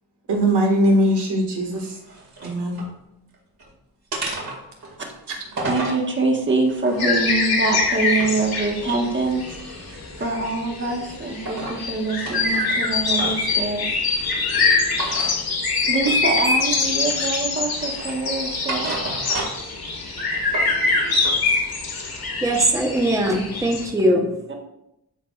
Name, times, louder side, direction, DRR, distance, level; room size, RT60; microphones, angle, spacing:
voice 1, 0.3-2.0 2.4-2.8, right 1 dB, 75° right, 0 dB, 1.9 m, -20 dB
sound 1, 1.7-2.9 3.3-3.7 4.1-6.0 6.6-8.4 8.8-10.6 11.0-11.8 12.1-13.5 14.9-15.4 16.0-16.2 16.6-17.3 17.7-19.7 20.1-21.4, right 2 dB, 60° right, 2.3 m, -33 dB
voice 2, 5.6-9.4 9.7-9.9 10.2-13.9 15.8-18.9 24.5-24.6, right 3 dB, 30° right, 1 dB, 1.4 m, -24 dB
sound 2, 7.0-23.9, left 3 dB, 60° left, 1.8 m, -24 dB
voice 3, 22.1-24.5, right 1 dB, 10° right, 1 dB, 1.0 m, -21 dB
13.0 x 4.6 x 2.4 m, 0.87 s
wide cardioid pair, 125°, 41 cm